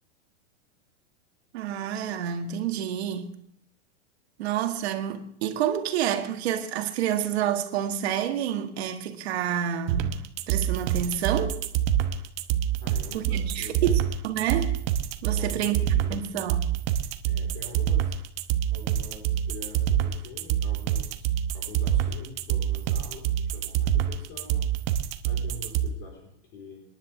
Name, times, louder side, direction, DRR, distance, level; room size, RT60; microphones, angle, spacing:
voice 1, 1.5-3.3 4.4-10.2 10.5-11.6 13.1-14.8 15.2-15.8 16.1-16.6, right 10 dB, 65° right, 2.0 m, -28 dB
sound 1, 9.9-25.9, right 10 dB, 40° right, 1.1 m, -26 dB
voice 2, 12.8-14.0 15.3-16.2 17.2-18.1 18.7-24.7 25.2-26.8, left 3 dB, 35° left, 4.4 m, -45 dB
28.0 x 10.5 x 3.5 m
supercardioid pair, 155°, 35 cm